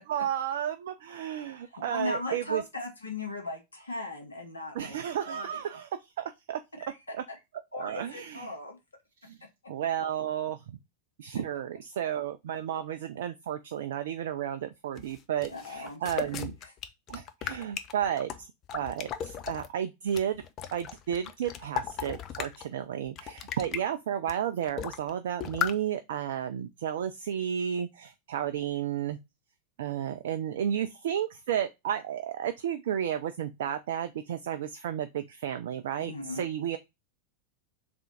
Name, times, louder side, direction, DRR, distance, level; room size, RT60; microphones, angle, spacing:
voice 1, 0.0-2.6 4.7-5.9 6.2-6.6 7.1-7.2 7.7-8.5 9.2-9.4 9.7-10.8 11.2-16.5 17.1-18.5 18.7-20.4 20.7-29.2 29.8-36.8, right 9 dB, 55° right, 0.4 m, -32 dB
voice 2, 1.6-5.0 5.2-5.6 6.8-7.4 7.7-8.8 15.5-16.7 36.0-36.4, left 2 dB, 75° left, 1.4 m, -38 dB
sound 1, 15.0-19.7 20.1-22.7 23.1-23.8 24.3-24.4 24.6-25.1 25.4-25.7, left 9 dB, 35° left, 0.5 m, -36 dB
3.7 x 3.4 x 4.0 m
figure-of-eight pair, 90°, 0 cm